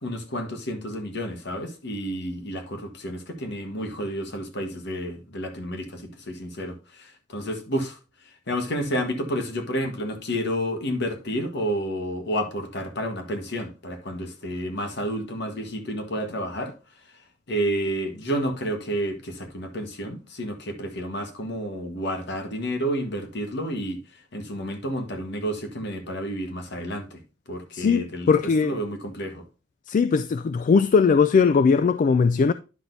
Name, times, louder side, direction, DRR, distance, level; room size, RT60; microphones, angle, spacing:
voice 1, 0.0-8.0 8.5-16.7 17.5-24.0 24.3-27.2 27.5-28.3 28.6-29.4, equal, 60° left, 1.4 m, -30 dB
voice 2, 27.7-28.8 29.9-32.5, left 5 dB, 40° left, 0.3 m, -19 dB
10.0 x 6.0 x 2.6 m
head